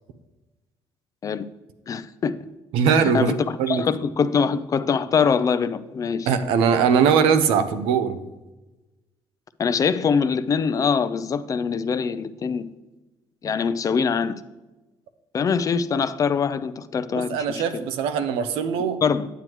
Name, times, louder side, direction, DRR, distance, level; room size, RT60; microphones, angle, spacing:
voice 1, 1.9-2.4 3.0-6.3 9.6-12.7 13.4-14.4 15.3-17.6 19.0-19.3, left 6 dB, 40° left, 0.4 m, -23 dB
voice 2, 2.7-3.8 6.3-8.2 17.1-19.0, right 7 dB, 90° right, 0.7 m, -21 dB
9.2 x 7.8 x 3.0 m
cardioid pair, 100°, 9 cm